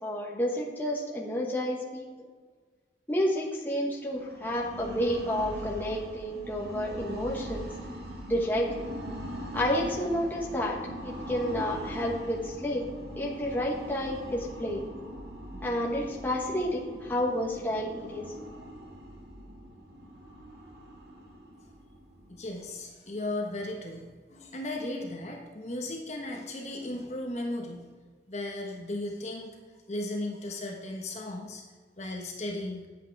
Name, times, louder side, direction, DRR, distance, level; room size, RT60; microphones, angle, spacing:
voice 1, 0.0-2.3 3.1-7.7 8.3-8.7 9.5-10.8 11.0-12.8 13.2-14.8 15.6-18.3, equal, 10° left, -3 dB, 1.3 m, -30 dB
sound 1, 4.1-22.8, equal, 65° right, 2.1 m, -41 dB
voice 2, 22.3-27.9 28.3-29.6 29.9-31.6 32.0-32.9, left 1 dB, 40° left, 0 dB, 1.2 m, -36 dB
9.2 x 8.2 x 4.7 m, 1.5 s
head